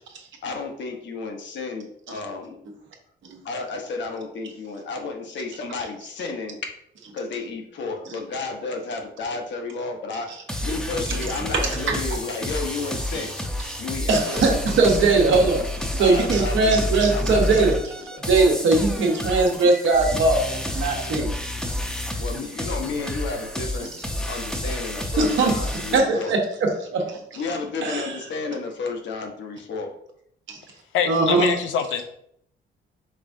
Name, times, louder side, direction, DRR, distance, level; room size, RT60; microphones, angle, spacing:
voice 1, 0.4-2.6 3.4-6.6 7.1-10.4 10.6-13.3 13.8-14.5 15.9-18.2 22.2-23.9 24.3-26.3 27.4-29.9, left 4 dB, 65° left, 3 dB, 1.0 m, -32 dB
sound 1, 10.5-26.0, left 1 dB, 5° left, 0.7 m, -29 dB
voice 2, 11.5-12.0 14.1-17.8 18.2-21.3 25.2-25.5 25.9-27.4 27.8-28.1 30.5-30.6 31.1-31.5, right 3 dB, 70° right, 1 dB, 1.2 m, -20 dB
voice 3, 30.9-32.0, left 7 dB, 80° left, 7 dB, 0.6 m, -24 dB
5.4 x 3.6 x 2.7 m, 0.70 s
cardioid pair, 90°, 20 cm